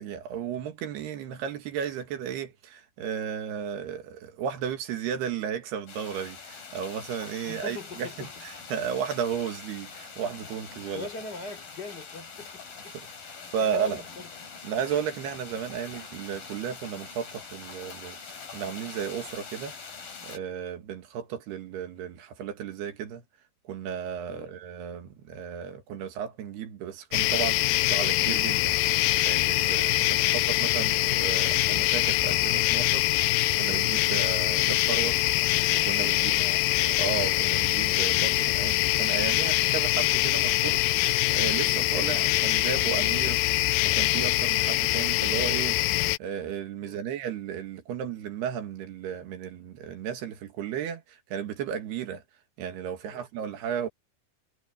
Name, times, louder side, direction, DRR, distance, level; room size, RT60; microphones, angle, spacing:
voice 1, 0.0-8.3 8.7-11.1 13.5-14.0 14.6-18.2 18.5-19.7 20.2-23.2 23.7-35.2 35.7-36.4 36.8-43.4 43.8-52.2 52.6-53.9, right 8 dB, 80° right, 3.9 m, -34 dB
sound 1, 5.9-20.4, left 5 dB, 60° left, 6.9 m, -44 dB
voice 2, 7.4-8.4 10.9-13.2 13.6-14.3 24.3-24.6 36.3-36.7 46.8-47.0 53.0-53.3, left 3 dB, 25° left, 4.5 m, -42 dB
sound 2, 27.1-46.2, left 18 dB, 85° left, 2.0 m, -24 dB
omnidirectional pair, 4.6 m